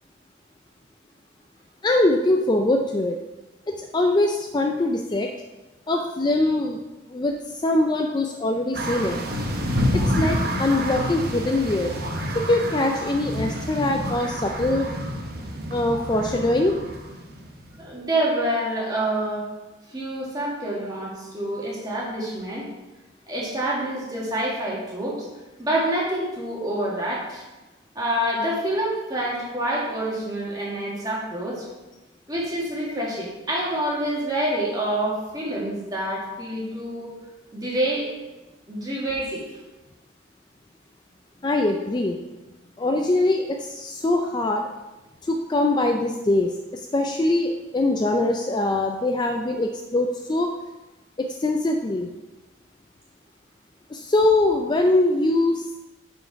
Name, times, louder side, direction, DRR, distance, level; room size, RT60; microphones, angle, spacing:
voice 1, 1.8-3.2 3.7-5.3 5.9-6.8 7.1-9.2 10.1-11.9 12.3-14.9 15.7-16.8 41.4-42.2 42.8-44.6 45.2-50.5 51.2-52.1 53.9-55.8, left 2 dB, 20° left, 3 dB, 0.3 m, -23 dB
sound 1, 8.7-17.8, equal, 50° right, 0.8 m, -28 dB
voice 2, 17.8-19.5 19.9-22.7 23.3-25.2 25.6-27.4 27.9-31.7 32.3-37.1 37.5-38.1 38.7-39.4, right 1 dB, 20° right, -4 dB, 1.7 m, -27 dB
7.7 x 4.4 x 4.6 m, 1.1 s
head